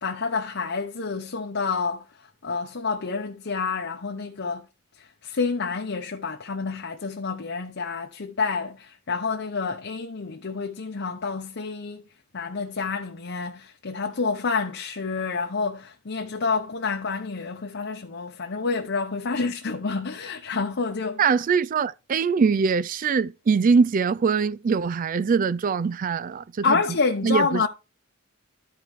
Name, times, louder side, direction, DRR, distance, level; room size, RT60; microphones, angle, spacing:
voice 1, 0.0-2.0 2.4-4.6 5.0-12.0 12.3-21.2 26.6-27.7, left 4 dB, 55° left, 0.8 m, -28 dB
voice 2, 21.2-26.8 27.2-27.7, right 5 dB, 40° right, 0.3 m, -22 dB
13.0 x 4.7 x 3.2 m
head